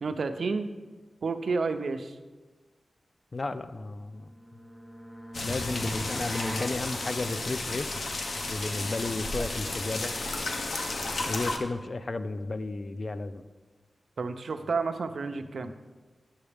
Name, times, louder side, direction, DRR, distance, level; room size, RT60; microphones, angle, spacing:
voice 1, 0.0-0.7 1.2-2.1 14.2-15.7, right 4 dB, 80° right, 7 dB, 0.5 m, -30 dB
voice 2, 3.3-4.3 5.4-7.9 8.5-10.2 11.3-13.4, left 3 dB, 50° left, 11 dB, 0.4 m, -33 dB
sound 1, 4.2-6.8, equal, 15° left, 1.3 m, -40 dB
sound 2, 5.3-11.6, left 2 dB, 75° left, 0.8 m, -33 dB
9.7 x 7.1 x 3.4 m, 1.3 s
wide cardioid pair, 80°, 0 cm